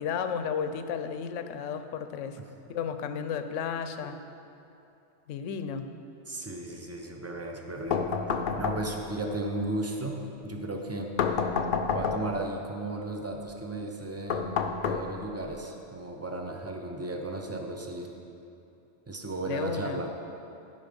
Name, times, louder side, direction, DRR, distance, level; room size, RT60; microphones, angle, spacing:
voice 1, 0.0-2.4 2.7-4.2 5.3-5.9 19.5-20.0, left 7 dB, 80° left, 9 dB, 0.9 m, -33 dB
voice 2, 6.3-11.1 11.9-14.5 14.8-18.1 19.1-20.1, right 2 dB, 15° right, 2 dB, 0.5 m, -35 dB
sound 1, 7.9-9.2 11.2-12.5 14.3-15.5, left 6 dB, 60° left, 0.6 m, -29 dB
11.5 x 5.4 x 5.2 m, 2.7 s
omnidirectional pair, 1.2 m